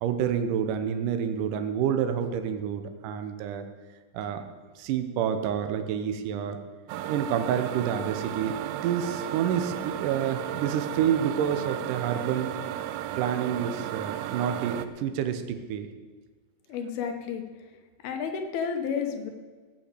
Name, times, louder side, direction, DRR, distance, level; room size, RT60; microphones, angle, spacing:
voice 1, 0.0-3.7 4.1-4.4 4.8-6.6 7.1-12.5 13.2-15.9, right 8 dB, 70° right, 8 dB, 2.3 m, -28 dB
sound 1, 6.9-14.9, right 12 dB, 90° right, 2.6 m, -34 dB
voice 2, 16.7-17.4 18.0-19.3, left 6 dB, 85° left, 5 dB, 3.1 m, -31 dB
16.5 x 5.7 x 8.4 m, 1.4 s
omnidirectional pair, 4.3 m